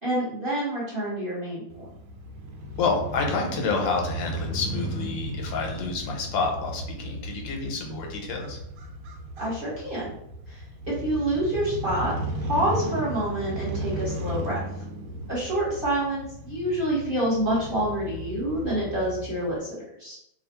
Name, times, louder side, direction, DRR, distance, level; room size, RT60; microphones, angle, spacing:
voice 1, 0.0-1.9 9.4-10.1 10.5-12.1 12.4-14.6 15.3-20.2, right 1 dB, 30° right, -8 dB, 1.3 m, -27 dB
Crow / Motorcycle, 1.7-19.6, equal, 85° right, 1.4 m, -35 dB
voice 2, 2.8-8.6, left 4 dB, 80° left, 1 dB, 1.5 m, -29 dB
3.3 x 2.4 x 4.3 m, 0.77 s
omnidirectional pair, 2.1 m